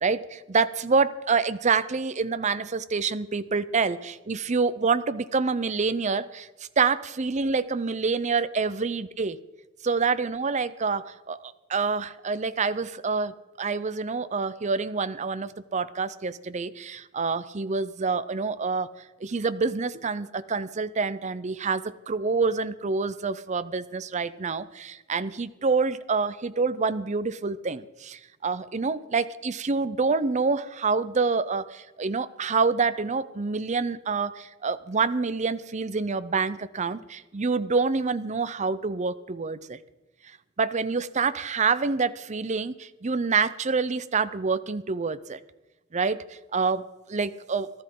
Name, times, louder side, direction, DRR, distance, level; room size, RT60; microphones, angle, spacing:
voice 1, 0.0-6.5 6.8-9.4 9.8-18.9 19.2-39.8 40.6-45.4 45.9-47.8, right 4 dB, 35° right, 13 dB, 0.6 m, -27 dB
18.0 x 13.0 x 3.8 m, 1.0 s
head